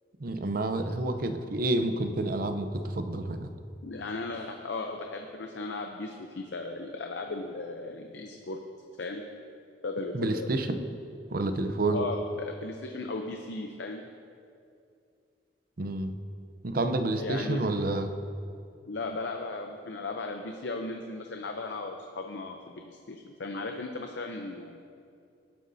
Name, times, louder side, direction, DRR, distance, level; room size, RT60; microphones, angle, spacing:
voice 1, 0.2-3.5 10.1-10.9 11.3-12.0 15.8-16.1 16.6-18.1, right 2 dB, 50° right, 7 dB, 0.7 m, -29 dB
voice 2, 3.8-8.6 9.0-9.2 9.8-10.5 11.9-14.0 17.2-17.7 18.9-24.8, left 3 dB, 70° left, 4 dB, 0.6 m, -36 dB
18.0 x 9.2 x 2.7 m, 2.4 s
head